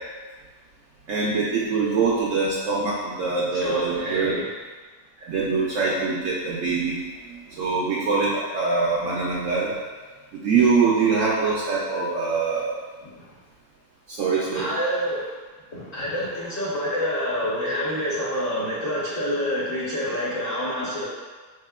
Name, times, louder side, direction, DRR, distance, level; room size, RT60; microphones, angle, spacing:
voice 1, 1.1-4.4 5.3-7.0 7.3-9.7 10.4-12.7 14.1-14.7, right 4 dB, 65° right, -5 dB, 0.8 m, -23 dB
voice 2, 3.5-4.5 13.0-13.1 14.5-15.3 15.7-21.1, equal, 50° left, -8 dB, 0.8 m, -27 dB
3.9 x 3.5 x 2.2 m, 1.4 s
omnidirectional pair, 1.7 m